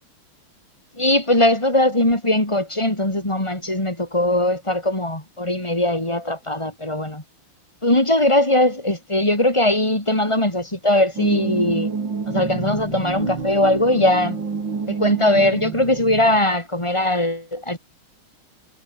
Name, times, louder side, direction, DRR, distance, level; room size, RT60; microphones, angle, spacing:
voice 1, 1.0-7.2 7.8-12.0 12.3-14.4 14.9-17.8, left 1 dB, 10° left, 4.1 m, -20 dB
sound 1, 11.1-16.4, right 5 dB, 55° right, 3.7 m, -28 dB
omnidirectional pair, 2.4 m